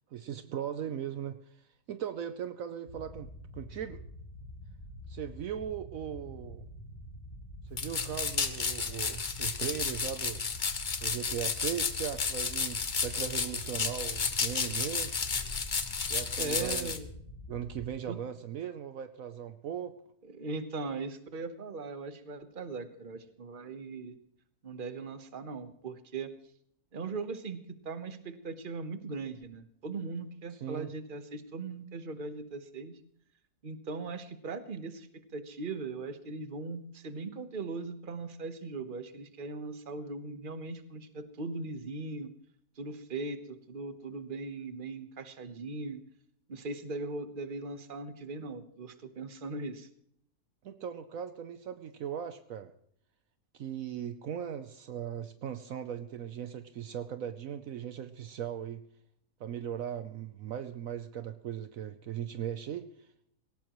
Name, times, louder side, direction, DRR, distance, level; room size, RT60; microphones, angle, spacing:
voice 1, 0.1-4.0 5.1-6.7 7.6-10.5 11.0-15.1 16.1-16.9 17.5-20.0 30.5-30.9 50.6-52.7 53.5-58.8 59.4-63.1, right 9 dB, 70° right, 10 dB, 1.1 m, -38 dB
sound 1, 2.9-17.9, equal, 60° left, 4.4 m, -47 dB
sound 2, 7.8-17.0, left 5 dB, 35° left, 1.0 m, -32 dB
voice 2, 16.3-17.1 18.1-18.2 20.3-24.2 24.6-26.3 26.9-27.6 27.8-33.0 33.6-42.3 42.8-46.0 46.5-49.9, right 3 dB, 40° right, 10 dB, 1.2 m, -39 dB
18.5 x 18.0 x 3.1 m, 0.68 s
omnidirectional pair, 1.5 m